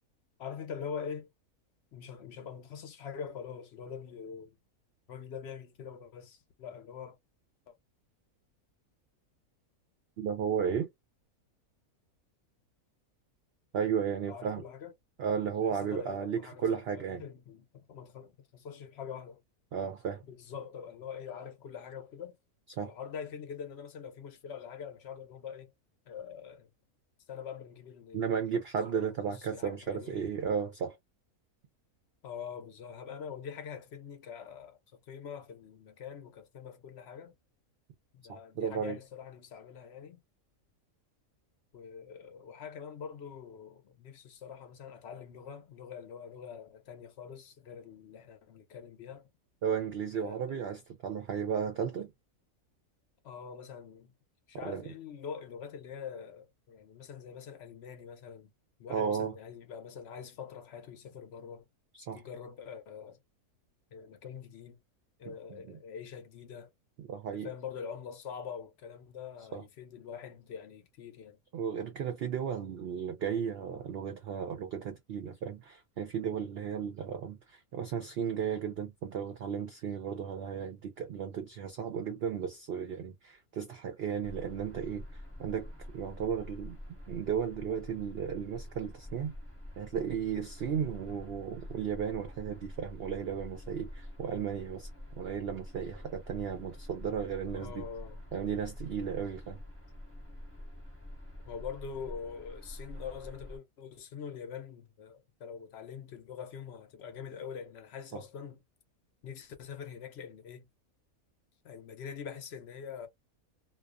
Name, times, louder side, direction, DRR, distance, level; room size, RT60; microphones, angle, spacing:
voice 1, 0.4-1.3 1.9-4.6 5.1-7.2 7.7-7.8 14.3-14.9 15.6-19.4 20.2-22.4 22.8-25.7 26.1-26.7 27.3-30.3 32.2-37.3 38.1-40.2 41.7-49.3 50.1-50.5 53.2-54.1 54.5-58.5 58.8-61.7 62.1-63.2 63.9-64.8 65.2-66.7 67.3-71.4 97.5-98.2 101.4-108.6 109.2-110.7 111.6-113.1, left 7 dB, 65° left, 0.7 m, -44 dB
voice 2, 10.2-10.9 13.7-14.6 15.2-17.2 19.7-20.2 22.8-22.9 28.1-31.0 38.3-39.0 49.6-52.1 54.6-54.8 58.9-59.3 61.9-62.2 65.3-65.8 67.0-67.5 69.5-69.6 71.5-85.7 85.9-89.3 89.8-94.9 95.2-97.8 98.3-99.6 108.1-108.2, right 7 dB, 65° right, 0.6 m, -34 dB
sound 1, 84.2-103.6, left 1 dB, 10° right, 0.9 m, -47 dB
2.3 x 2.3 x 2.3 m
omnidirectional pair, 1.6 m